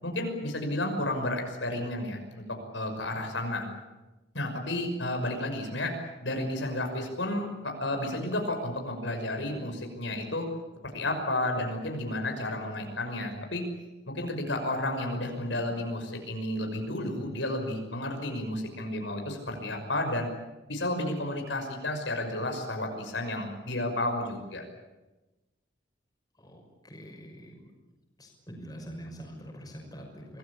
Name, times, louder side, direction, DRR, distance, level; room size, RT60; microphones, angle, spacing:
voice 1, 0.0-2.4 2.7-3.7 4.3-5.9 6.2-10.5 10.9-13.6 14.1-20.3 20.7-24.6, left 1 dB, 75° left, 3 dB, 5.9 m, -32 dB
voice 2, 26.4-27.7 28.2-30.4, equal, 20° left, 1 dB, 6.1 m, -45 dB
26.0 x 20.0 x 8.7 m, 1.1 s
head